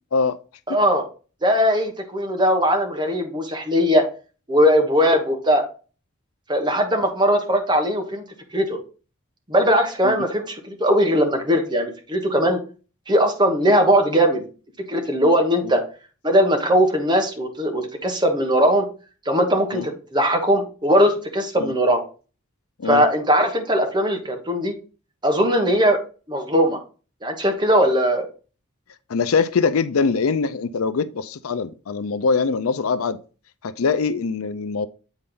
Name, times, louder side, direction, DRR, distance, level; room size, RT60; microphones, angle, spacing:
voice 1, 0.7-1.0 1.4-4.0 4.5-5.6 6.5-8.2 8.5-8.8 9.5-12.6 13.1-14.4 14.9-15.8 16.2-18.9 19.2-22.0 22.8-24.7 25.2-26.0 26.3-26.8 27.2-28.2, equal, 20° right, 1.2 m, -19 dB
voice 2, 29.1-33.2 33.6-34.9, left 5 dB, 85° left, 0.5 m, -23 dB
8.2 x 4.2 x 3.8 m
head